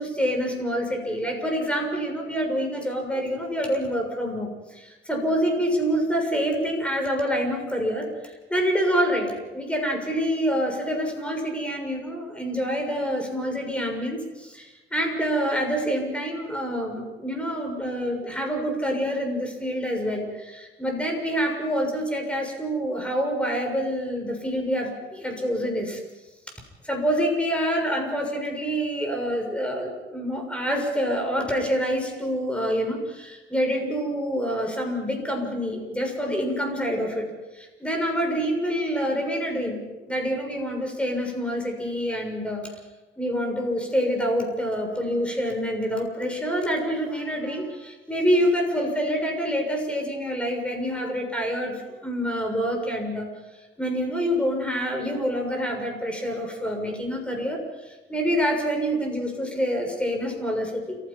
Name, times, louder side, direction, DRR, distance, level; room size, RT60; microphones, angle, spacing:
voice 1, 0.0-26.0 26.8-37.3 37.5-42.7 43.2-53.3 53.8-57.6 57.9-61.0, equal, 5° left, 2 dB, 6.8 m, -27 dB
29.5 x 15.5 x 5.7 m, 1.1 s
cardioid pair, 90°, 20 cm